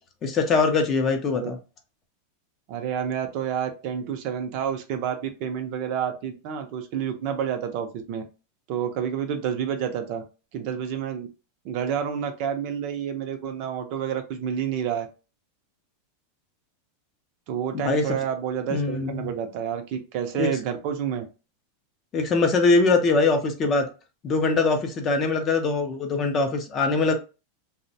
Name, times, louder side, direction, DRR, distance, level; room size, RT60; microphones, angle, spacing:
voice 1, 0.2-1.6 17.7-18.0 18.7-19.3 20.3-20.5 22.1-23.9 24.2-27.1, left 3 dB, 25° left, 0.4 m, -22 dB
voice 2, 2.7-8.2 8.7-10.2 10.5-11.3 11.6-15.1 17.5-21.2, right 8 dB, 45° right, 0.4 m, -29 dB
2.5 x 2.0 x 2.6 m
supercardioid pair, 160°, 0 cm